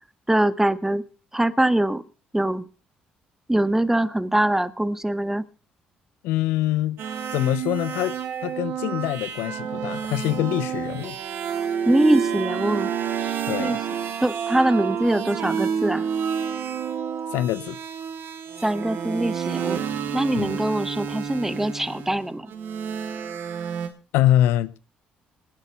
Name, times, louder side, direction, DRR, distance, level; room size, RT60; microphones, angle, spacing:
voice 1, 0.3-1.0 1.3-2.0 2.3-2.7 3.5-5.4 11.8-12.9 13.6-13.8 14.2-16.1 18.6-19.8 20.1-22.5, right 1 dB, 10° right, 1.6 m, -23 dB
voice 2, 6.2-7.0 7.3-11.2 13.5-13.8 17.3-17.8 20.3-20.6 24.1-24.8, left 13 dB, 80° left, 0.7 m, -24 dB
sound 1, 7.0-23.9, right 7 dB, 70° right, 3.0 m, -29 dB
20.0 x 8.0 x 5.7 m
hypercardioid pair, 50°, 4 cm